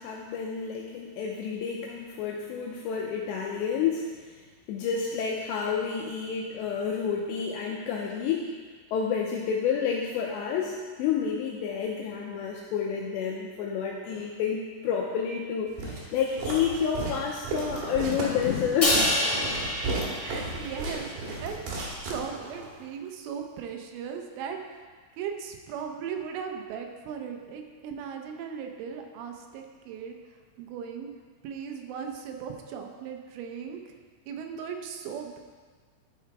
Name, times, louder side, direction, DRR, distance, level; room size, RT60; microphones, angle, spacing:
voice 1, 0.0-4.1 4.7-8.5 8.9-19.0, left 7 dB, 85° left, -1 dB, 2.6 m, -29 dB
Walk footsteps, 15.8-22.7, right 2 dB, 60° right, 2.4 m, -34 dB
Crash cymbal, 18.8-21.2, left 1 dB, 30° left, 1.3 m, -27 dB
voice 2, 20.2-21.1 21.4-21.7 22.0-24.8 25.2-30.2 30.6-31.1 31.4-33.8 34.3-35.4, right 7 dB, 80° right, 4 dB, 3.2 m, -37 dB
11.5 x 5.6 x 4.7 m, 1.5 s
omnidirectional pair, 5.7 m